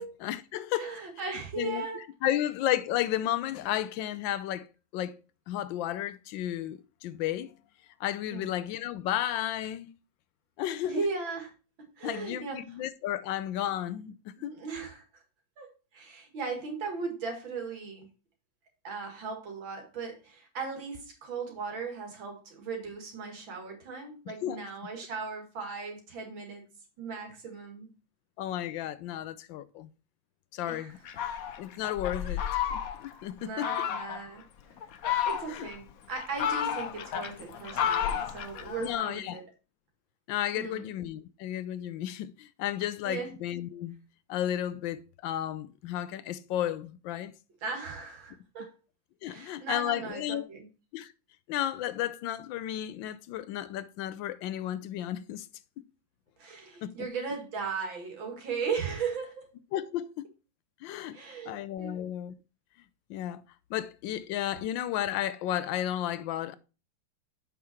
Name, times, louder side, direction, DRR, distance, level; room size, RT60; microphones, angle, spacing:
voice 1, 0.0-0.9 1.6-4.7 4.9-5.2 5.5-7.5 8.0-9.9 10.6-11.0 12.0-14.6 24.4-24.6 28.4-29.9 30.5-31.0 31.6-32.4 32.7-33.7 35.5-35.7 38.8-39.4 40.3-44.0 44.3-47.3 49.2-50.5 50.9-51.1 51.5-55.5 56.8-57.1 59.7-60.1 60.8-61.2 61.5-62.3 63.1-63.4 63.7-66.6, left 12 dB, 80° left, 1.3 m, -33 dB
voice 2, 0.8-2.5 8.3-8.5 10.8-11.5 12.0-12.8 14.4-15.2 15.6-18.1 18.8-26.6 27.0-27.9 30.6-31.0 32.0-32.4 33.4-34.8 35.3-39.4 40.5-40.9 42.8-43.3 47.6-48.7 49.3-50.7 56.4-59.5 59.7-59.8 61.1-62.1, right 5 dB, 85° right, 2.7 m, -37 dB
Fowl, 31.1-33.1 33.6-34.2 34.8-35.7 36.2-39.0, left 9 dB, 60° left, 1.0 m, -31 dB
7.4 x 5.7 x 4.3 m
omnidirectional pair, 2.1 m